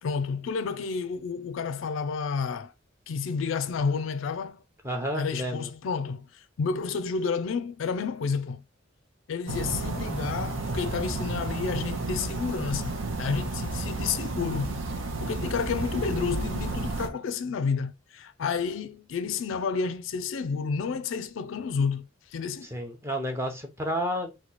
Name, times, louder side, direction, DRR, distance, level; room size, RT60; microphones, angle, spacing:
voice 1, 0.0-2.7 3.1-4.6 5.2-8.6 9.3-14.8 15.2-22.7, left 5 dB, 75° left, 0.4 m, -30 dB
voice 2, 4.8-5.7 22.6-24.3, equal, 15° right, 0.6 m, -31 dB
sound 1, 9.5-17.1, right 2 dB, 75° right, 0.6 m, -32 dB
3.0 x 2.2 x 3.9 m
head